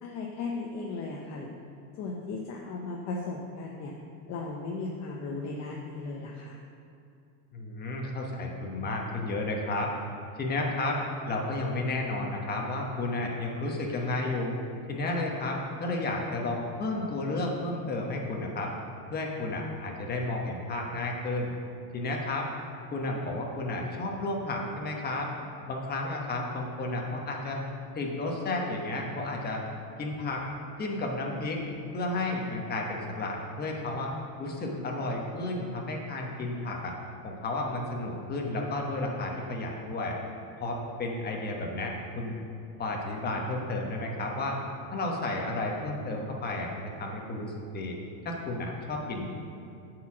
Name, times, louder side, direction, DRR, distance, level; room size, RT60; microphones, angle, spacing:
voice 1, 0.0-1.5 2.0-3.9 4.3-6.6, left 3 dB, 35° left, -1 dB, 0.8 m, -36 dB
voice 2, 7.5-9.9 10.4-11.0 11.2-14.6 14.9-18.7 19.1-21.5 21.9-22.5 22.9-25.3 25.7-27.6 27.9-29.6 30.0-30.4 30.8-31.6 31.9-34.1 34.4-36.9 37.2-40.2 40.6-42.4 42.8-44.6 44.9-47.9 48.2-49.2, left 2 dB, 20° left, 0 dB, 1.2 m, -32 dB
8.0 x 4.8 x 6.1 m, 2.7 s
supercardioid pair, 130°, 45 cm